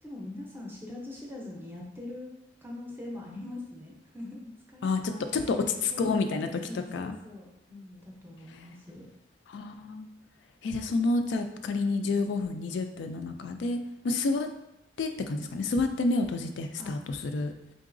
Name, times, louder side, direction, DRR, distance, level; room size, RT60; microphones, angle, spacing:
voice 1, 0.0-2.3 2.6-5.5 5.9-9.1 16.8-16.9, left 1 dB, 10° right, -1 dB, 0.6 m, -42 dB
voice 2, 5.8-6.5 6.9-7.1 9.5-10.1 10.6-13.8 14.0-14.5 15.0-17.5, left 3 dB, 65° left, 6 dB, 0.3 m, -29 dB
3.8 x 3.7 x 2.5 m, 0.89 s
head